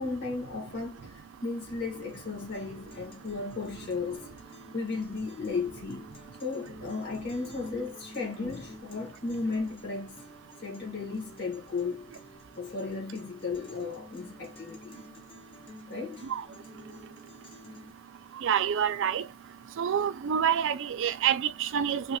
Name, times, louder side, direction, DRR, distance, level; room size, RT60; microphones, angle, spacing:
voice 1, 0.0-4.3 4.7-6.1 6.4-10.2 10.6-12.1 12.5-15.0 15.9-16.3, left 4 dB, 50° left, 1.4 m, -35 dB
Guitar, 1.9-17.9, left 1 dB, 25° left, 0.8 m, -51 dB
voice 2, 18.4-19.2 19.8-22.2, right 8 dB, 55° right, 0.3 m, -27 dB
3.0 x 2.4 x 2.8 m
head